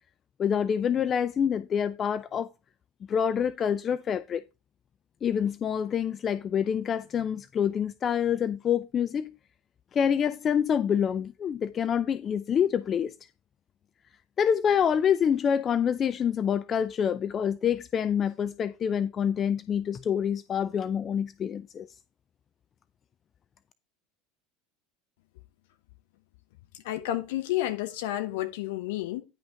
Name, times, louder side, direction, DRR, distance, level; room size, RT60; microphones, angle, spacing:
voice 1, 0.4-2.5 3.1-4.4 5.2-9.3 9.9-13.1 14.4-21.9, left 8 dB, 35° left, 0.4 m, -26 dB
voice 2, 26.8-29.2, left 14 dB, 60° left, 1.1 m, -30 dB
10.0 x 5.5 x 3.8 m
figure-of-eight pair, 70°, 0 cm